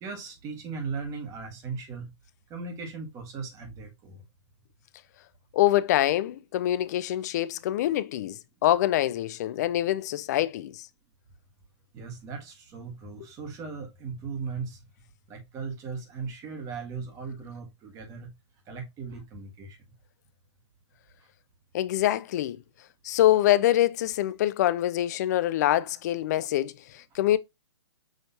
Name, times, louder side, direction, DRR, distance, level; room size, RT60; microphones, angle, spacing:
voice 1, 0.0-2.1 2.5-4.2 11.9-14.8 15.3-18.3 18.7-19.8, right 5 dB, 20° right, 1.4 m, -38 dB
voice 2, 5.5-10.9 21.7-22.6 23.0-27.4, left 13 dB, 35° left, 0.4 m, -25 dB
6.2 x 3.2 x 2.7 m
hypercardioid pair, 145°, 15 cm